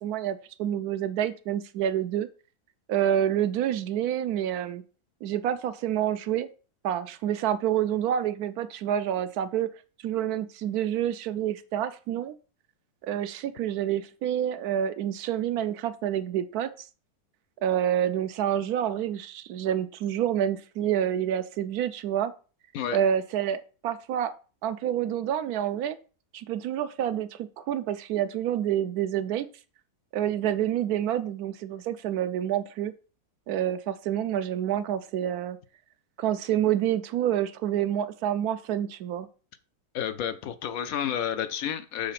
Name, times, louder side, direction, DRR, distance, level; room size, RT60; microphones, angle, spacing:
voice 1, 0.0-2.3 2.9-4.8 5.2-6.5 6.8-9.7 10.0-12.3 13.0-16.9 17.6-22.3 22.9-24.3 24.6-26.0 26.3-29.5 30.1-32.9 33.5-35.6 36.2-39.3, right 10 dB, 75° right, 12 dB, 1.1 m, -28 dB
voice 2, 39.9-42.1, left 9 dB, 70° left, 11 dB, 1.0 m, -30 dB
6.6 x 4.0 x 5.8 m, 0.36 s
omnidirectional pair, 1.7 m